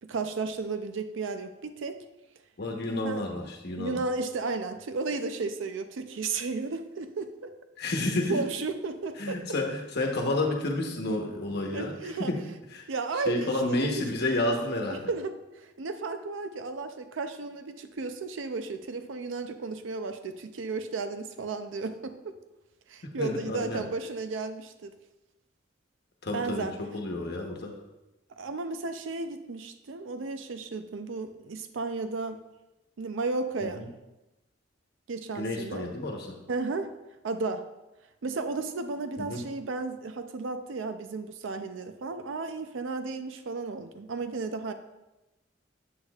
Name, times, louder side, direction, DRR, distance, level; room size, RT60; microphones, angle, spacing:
voice 1, 0.0-2.0 3.0-3.2 3.8-7.5 8.3-9.4 11.7-12.3 12.9-13.9 15.1-22.4 22.9-24.9 26.3-26.7 28.4-32.4 33.0-33.9 35.1-35.8 36.5-36.9 37.2-37.6 38.2-44.7, right 3 dB, 80° right, 9 dB, 0.5 m, -33 dB
voice 2, 2.6-4.0 7.8-8.4 9.2-12.4 12.7-12.9 13.3-15.1 23.2-23.8 26.2-26.7 26.9-27.8 33.6-33.9 35.3-36.3 39.2-39.4, left 2 dB, 60° left, 1 dB, 1.0 m, -30 dB
8.1 x 8.0 x 2.4 m, 0.99 s
head